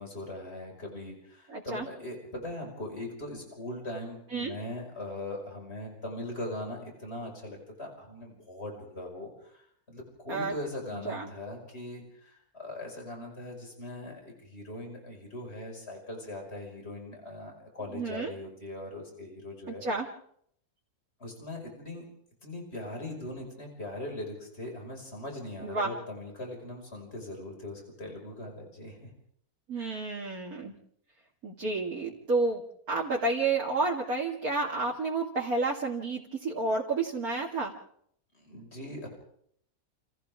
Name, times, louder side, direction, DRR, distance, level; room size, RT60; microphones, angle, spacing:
voice 1, 0.0-19.8 21.2-22.0 22.4-29.1 29.8-30.1 38.3-39.1, left 1 dB, 45° left, 1 dB, 5.9 m, -40 dB
voice 2, 1.5-1.9 4.3-4.6 10.3-10.5 10.9-11.3 17.9-18.3 19.7-20.1 25.6-25.9 29.7-30.7 31.4-37.7, right 3 dB, 75° right, -3 dB, 3.0 m, -30 dB
30.0 x 29.5 x 3.6 m, 0.68 s
omnidirectional pair, 1.5 m